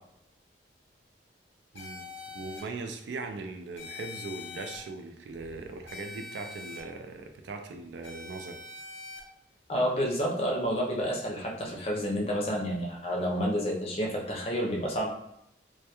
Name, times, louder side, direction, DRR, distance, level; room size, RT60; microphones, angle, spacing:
voice 1, 1.7-8.6, right 3 dB, 75° right, 5 dB, 0.3 m, -40 dB
sound 1, 1.8-2.6 3.8-4.8 5.9-6.8 8.0-9.2, left 4 dB, 80° left, 0.6 m, -43 dB
voice 2, 9.7-15.1, equal, 35° left, -2 dB, 0.5 m, -29 dB
2.2 x 2.2 x 2.8 m, 0.76 s
head